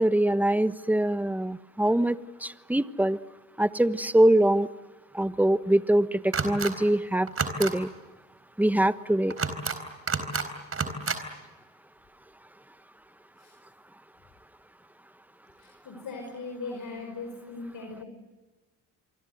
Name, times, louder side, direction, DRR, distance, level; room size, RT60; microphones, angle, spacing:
voice 1, 0.0-2.2 2.4-3.2 3.6-4.7 5.1-7.3 7.6-7.9 8.6-9.3, right 1 dB, 5° right, 13 dB, 1.2 m, -23 dB
sound 1, 6.3-6.7 7.3-7.7 9.3-9.8 10.1-10.5 10.7-11.2, right 5 dB, 40° right, 4.1 m, -29 dB
voice 2, 15.6-18.0, left 3 dB, 60° left, 3 dB, 5.1 m, -39 dB
27.5 x 24.0 x 7.9 m, 1.2 s
supercardioid pair, 60°, 37 cm